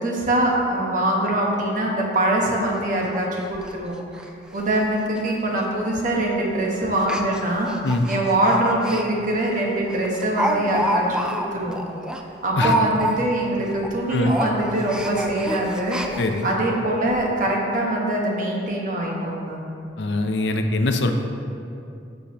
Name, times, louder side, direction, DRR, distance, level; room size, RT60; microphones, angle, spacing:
voice 1, 0.0-3.9 4.5-7.7 8.1-11.8 12.4-16.0 16.4-19.6, right 1 dB, 45° right, -2 dB, 1.3 m, -23 dB
Speech, 2.2-2.3 2.7-2.8 3.1-3.2 3.5-3.7 4.1-4.3 4.6-4.8 5.1-5.2 6.0-6.2 7.0-9.0 9.4-9.5 9.9-13.5 13.7-13.9 14.2-16.5 17.1-17.2 17.5-17.6, equal, 5° right, 0.4 m, -27 dB
voice 2, 16.2-16.5 20.0-21.1, left 2 dB, 75° left, 5 dB, 0.6 m, -22 dB
12.0 x 6.5 x 2.9 m, 2.5 s
head